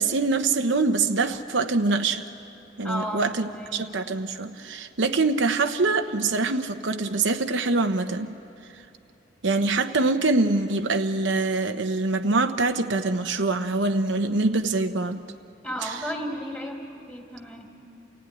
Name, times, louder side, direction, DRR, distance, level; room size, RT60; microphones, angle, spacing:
voice 1, 0.0-2.2 2.8-8.3 9.4-15.2 15.8-16.0, right 3 dB, 70° right, 6 dB, 0.9 m, -24 dB
voice 2, 2.8-3.8 15.6-17.7, equal, 10° left, 1 dB, 3.0 m, -34 dB
29.0 x 16.0 x 9.9 m, 2.8 s
head